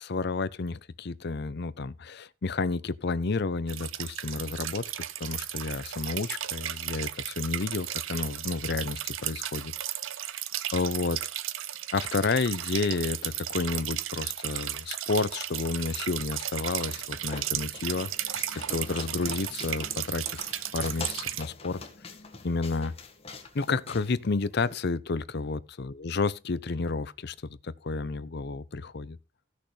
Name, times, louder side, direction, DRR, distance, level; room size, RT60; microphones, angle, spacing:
voice 1, 0.1-4.8 5.2-9.7 10.7-11.2 11.9-20.5 20.7-21.8 22.4-22.9 23.5-27.3 27.6-29.2, left 4 dB, 55° left, 0.6 m, -31 dB
sound 1, 3.7-21.4, right 12 dB, 85° right, 0.7 m, -35 dB
sound 2, 16.6-24.7, left 3 dB, 30° left, 1.6 m, -45 dB
16.0 x 6.4 x 3.3 m
head